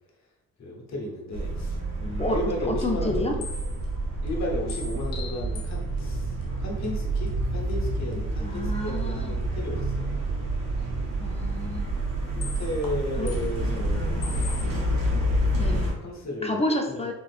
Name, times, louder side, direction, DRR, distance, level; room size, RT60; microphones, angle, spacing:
voice 1, 0.6-3.4 4.2-6.3 6.6-10.2 12.3-14.5 15.6-17.0, left 1 dB, 50° left, -1 dB, 1.0 m, -34 dB
sound 1, 1.3-15.9, right 1 dB, 70° right, 1.1 m, -28 dB
voice 2, 2.7-3.4 8.4-9.4 11.2-12.0 13.2-13.3 15.6-15.9 16.4-17.1, left 1 dB, 15° left, 2 dB, 0.5 m, -29 dB
sound 2, 3.4-3.9 4.3-4.4 4.7-5.7 6.0-6.1 6.4-6.5 6.8-6.9 7.3-7.4 7.7-7.8 8.1-8.2 12.4-13.0 13.3-13.9 14.2-14.6, left 4 dB, 65° left, 0.6 m, -40 dB
3.4 x 2.4 x 2.4 m, 0.93 s
cardioid pair, 65°, 36 cm